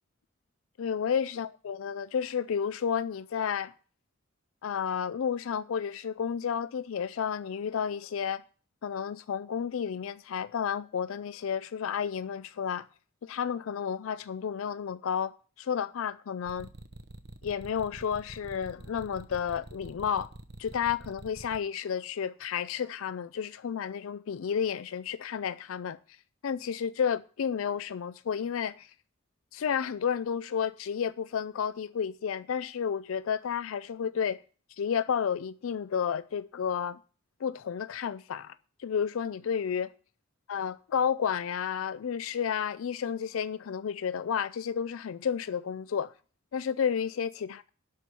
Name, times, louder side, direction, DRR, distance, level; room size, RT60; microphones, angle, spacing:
voice 1, 0.8-3.7 4.6-8.4 8.8-12.9 13.2-15.3 15.6-16.7 17.4-20.3 20.6-26.0 26.4-28.9 29.5-34.4 34.8-37.0 37.4-38.5 38.8-39.9 40.5-46.1 46.5-47.6, left 7 dB, 75° left, 0.4 m, -31 dB
sound 1, 16.5-21.6, right 2 dB, 50° right, 0.9 m, -46 dB
11.5 x 4.5 x 8.1 m
head